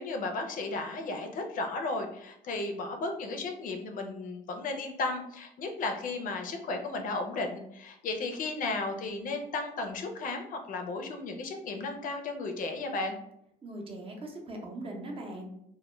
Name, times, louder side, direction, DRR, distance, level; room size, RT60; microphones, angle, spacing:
voice 1, 0.0-13.2, left 3 dB, 55° left, 4 dB, 0.4 m, -34 dB
voice 2, 13.6-15.5, right 1 dB, 30° right, 1 dB, 0.6 m, -40 dB
2.1 x 2.1 x 3.0 m, 0.76 s
cardioid pair, 110°, 17 cm